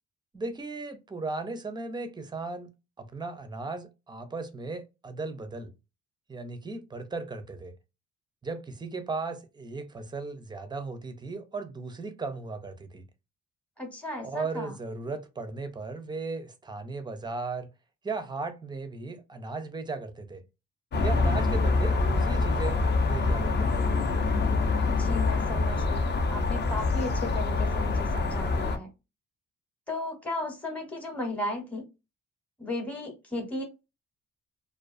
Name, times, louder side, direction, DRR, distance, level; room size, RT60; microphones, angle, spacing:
voice 1, 0.3-2.7 3.0-5.7 6.3-7.7 8.4-13.0 14.2-17.7 18.0-20.4 21.0-23.8, right 3 dB, 15° right, 0.5 m, -36 dB
voice 2, 13.8-14.7 24.9-28.9 29.9-31.8 32.6-33.6, left 2 dB, 5° left, 0.9 m, -35 dB
sound 1, 20.9-28.8, left 3 dB, 35° left, 0.5 m, -25 dB
2.3 x 2.3 x 2.5 m
cardioid pair, 90°, 30 cm